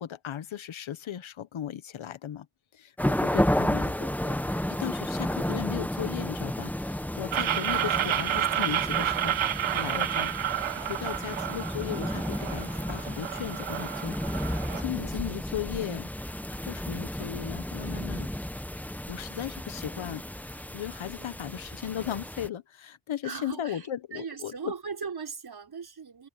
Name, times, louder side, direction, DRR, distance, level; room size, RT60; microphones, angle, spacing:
voice 1, 0.0-2.5 2.7-4.3 4.7-9.3 9.7-16.1 16.6-18.3 19.1-24.7, left 10 dB, 85° left, 1.2 m, -37 dB
sound 1, 3.0-22.5, left 1 dB, 5° left, 0.9 m, -32 dB
sound 2, 7.3-14.8, right 10 dB, 80° right, 1.0 m, -30 dB
voice 2, 7.8-8.3 14.8-15.2 21.1-21.4 23.2-26.3, right 5 dB, 50° right, 4.8 m, -40 dB
wide cardioid pair, 85°, 47 cm